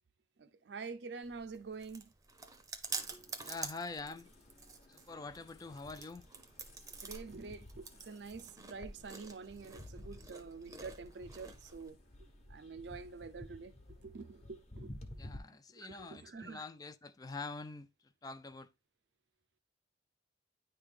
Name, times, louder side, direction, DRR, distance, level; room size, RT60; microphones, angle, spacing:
voice 1, 0.4-2.1 7.0-12.0 12.5-13.7 14.0-14.9 15.7-16.6, right 4 dB, 65° right, 0.5 m, -47 dB
Chewing mastication, 1.2-11.9, right 4 dB, 20° right, 0.7 m, -48 dB
sound 1, 3.0-15.4, left 1 dB, 35° left, 1.0 m, -54 dB
voice 2, 3.4-4.3 4.9-6.3 15.2-17.9 18.2-18.7, left 3 dB, 20° left, 0.3 m, -45 dB
9.7 x 3.4 x 3.4 m
head